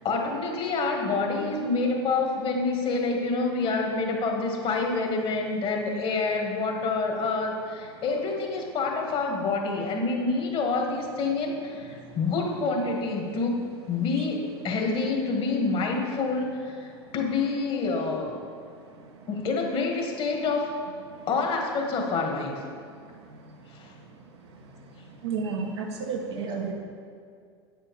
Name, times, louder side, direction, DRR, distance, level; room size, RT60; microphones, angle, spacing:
voice 1, 0.0-13.6 13.9-14.4 14.6-18.3 19.3-20.7 21.3-22.6 23.7-23.9, left 3 dB, 40° left, 2 dB, 1.9 m, -27 dB
voice 2, 25.2-26.7, right 5 dB, 75° right, 1 dB, 1.4 m, -31 dB
8.8 x 7.7 x 4.8 m, 2.2 s
hypercardioid pair, 90°, 14 cm